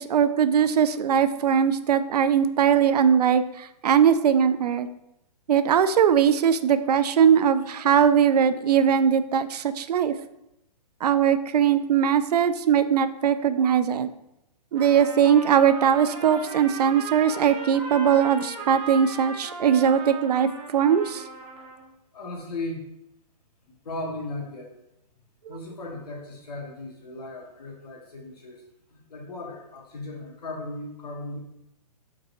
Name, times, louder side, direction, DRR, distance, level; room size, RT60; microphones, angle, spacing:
voice 1, 0.0-4.9 5.5-10.1 11.0-14.1 14.7-21.2, right 8 dB, 75° right, 12 dB, 0.4 m, -20 dB
Trumpet, 14.7-21.9, right 3 dB, 25° right, 0.8 m, -38 dB
voice 2, 22.1-22.9 23.8-24.8 25.5-28.6 28.9-31.4, left 2 dB, 75° left, 0 dB, 1.4 m, -36 dB
4.7 x 3.9 x 2.6 m, 0.84 s
hypercardioid pair, 125°, 20 cm